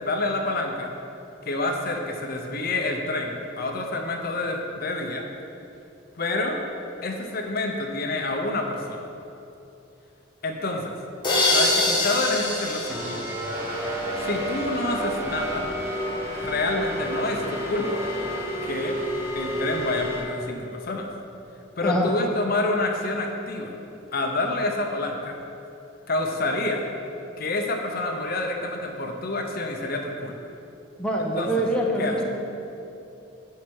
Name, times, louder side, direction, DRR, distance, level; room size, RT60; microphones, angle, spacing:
voice 1, 0.0-0.9 1.5-5.2 6.2-6.6 7.0-9.0 10.4-10.9 11.5-13.3 14.2-15.6 16.4-18.0 18.6-19.0 19.3-21.1 21.8-23.7 24.1-25.3 26.1-26.8 27.4-30.4 31.3-31.6 32.0-32.2, left 2 dB, 45° left, 3 dB, 0.7 m, -28 dB
sound 1, 11.2-14.1, left 2 dB, 20° left, 1.4 m, -24 dB
sound 2, 12.9-20.2, equal, 10° right, 1.1 m, -30 dB
voice 2, 21.8-22.1 31.0-32.2, equal, 5° left, -2 dB, 0.7 m, -24 dB
7.4 x 5.7 x 6.3 m, 2.8 s
head